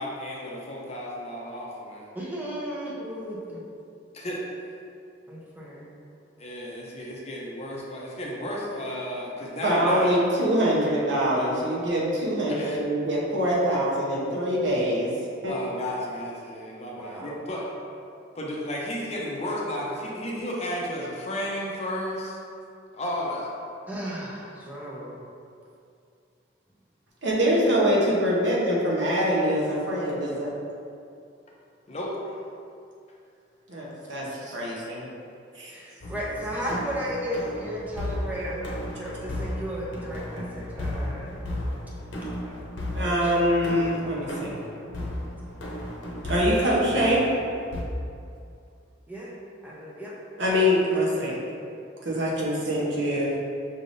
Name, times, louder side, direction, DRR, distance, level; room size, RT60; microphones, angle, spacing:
voice 1, 0.0-2.1 4.1-4.4 6.4-10.2 12.5-12.8 15.5-17.7 18.3-22.4 22.9-23.5 31.9-32.4, left 1 dB, 35° left, -3 dB, 0.6 m, -33 dB
voice 2, 2.1-3.6 5.3-6.0 17.0-17.4 23.9-25.2 35.7-38.7 39.0-41.3 42.4-42.5 43.0-43.4 49.1-49.3 49.6-50.1, equal, 10° right, -6 dB, 0.7 m, -34 dB
voice 3, 9.6-15.1 15.4-15.5 27.2-30.5 33.7-35.1 35.5-35.7 42.9-44.5 46.3-47.2 50.4-51.4 52.0-53.3, equal, 75° right, -5 dB, 0.9 m, -24 dB
sound 1, 36.0-47.8, left 1 dB, 85° left, 0.7 m, -34 dB
5.5 x 3.4 x 2.6 m, 2.4 s
head